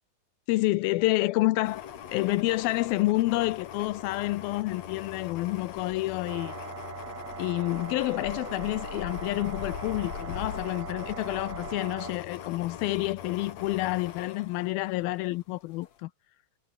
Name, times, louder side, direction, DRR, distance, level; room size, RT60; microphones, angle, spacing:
voice 1, 0.5-6.5 7.4-16.1, left 19 dB, 85° left, 2.6 m, -28 dB
sound 1, 1.6-15.4 15.8-15.9, left 9 dB, 55° left, 2.8 m, -41 dB
sound 2, 6.3-12.1, right 6 dB, 50° right, 4.4 m, -41 dB
omnidirectional pair, 4.2 m